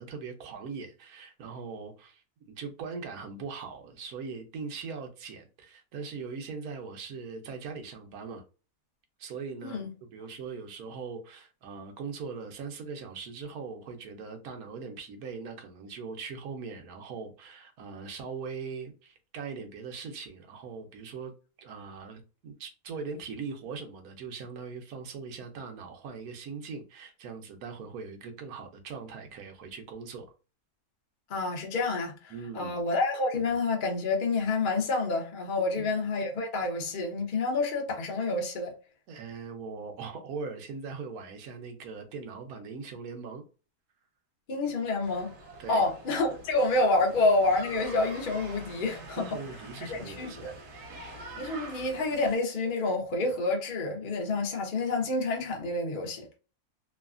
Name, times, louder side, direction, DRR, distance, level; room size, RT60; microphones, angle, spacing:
voice 1, 0.0-8.4 9.2-21.3 21.6-30.3 32.3-32.8 35.8-35.9 39.1-43.4 45.6-45.9 49.2-50.5, right 5 dB, 70° right, 1.2 m, -40 dB
voice 2, 31.3-38.7 44.5-45.3 45.7-49.3 49.9-50.5 51.4-56.3, left 3 dB, 45° left, 0.7 m, -28 dB
sound 1, 45.0-52.3, right 2 dB, 90° right, 1.3 m, -45 dB
3.2 x 2.2 x 2.4 m
omnidirectional pair, 1.7 m